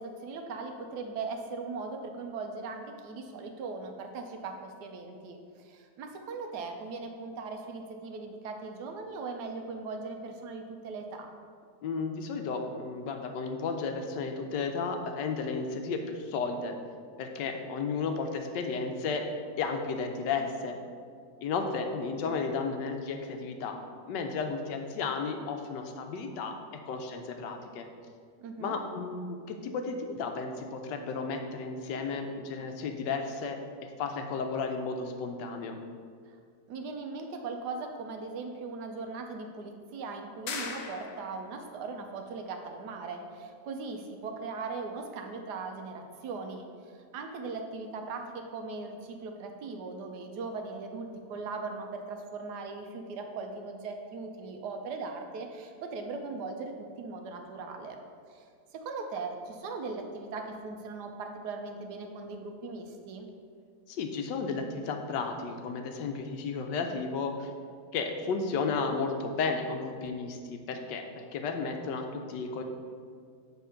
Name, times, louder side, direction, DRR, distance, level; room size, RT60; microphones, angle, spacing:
voice 1, 0.0-11.3 28.4-28.8 36.3-36.4 36.7-46.7 47.1-58.0 58.3-58.4 58.7-63.3, right 4 dB, 75° right, 4 dB, 1.2 m, -39 dB
voice 2, 11.8-16.7 17.2-19.2 19.6-20.8 21.4-26.6 26.8-27.9 28.6-33.6 34.0-35.8 63.9-67.5 67.9-72.6, left 4 dB, 85° left, 5 dB, 1.3 m, -33 dB
sound 1, 40.5-41.5, left 5 dB, 65° left, 1.1 m, -38 dB
6.9 x 3.6 x 5.6 m, 2.1 s
omnidirectional pair, 1.9 m